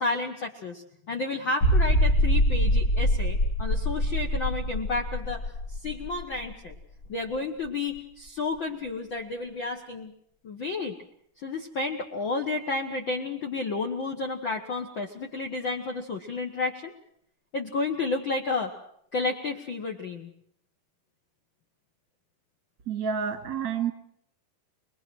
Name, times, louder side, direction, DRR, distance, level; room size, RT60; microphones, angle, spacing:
voice 1, 0.0-5.5 5.8-6.7 7.1-10.1 10.4-11.0 11.4-16.9 17.5-18.7 19.1-20.3, left 3 dB, 60° left, 5 dB, 1.2 m, -31 dB
sound 1, 1.6-7.0 7.3-7.4 8.0-8.1, equal, 40° left, 2.0 m, -24 dB
voice 2, 22.9-23.9, right 7 dB, 35° right, 8 dB, 1.5 m, -29 dB
25.5 x 20.5 x 6.2 m, 0.70 s
omnidirectional pair, 4.3 m